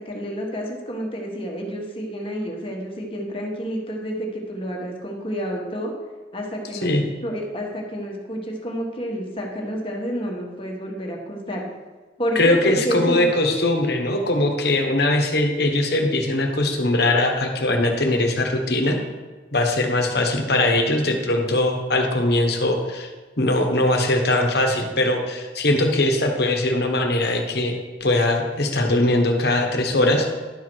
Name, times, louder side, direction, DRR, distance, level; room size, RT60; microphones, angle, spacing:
voice 1, 0.0-5.9 6.3-6.9 7.2-11.6 12.2-13.3, equal, 30° left, 0 dB, 1.5 m, -29 dB
voice 2, 12.3-19.0 19.5-23.1 23.4-27.7 28.0-30.4, left 1 dB, 60° left, 3 dB, 1.3 m, -21 dB
11.5 x 4.7 x 6.2 m, 1.3 s
head